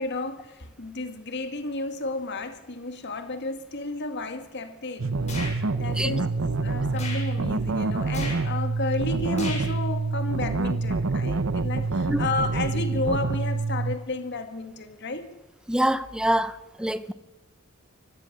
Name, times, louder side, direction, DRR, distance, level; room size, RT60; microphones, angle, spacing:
voice 1, 0.0-5.2 5.7-6.3 6.6-15.3, left 2 dB, 55° left, 2.0 m, -32 dB
sound 1, 5.0-14.0, right 3 dB, 70° right, 0.9 m, -27 dB
sound 2, 5.3-5.6 6.9-7.3 8.1-8.4 9.3-9.7, left 2 dB, 35° left, 7.0 m, -35 dB
voice 2, 15.7-16.5 16.8-17.1, right 1 dB, 5° right, 0.7 m, -25 dB
24.5 x 18.5 x 6.7 m
head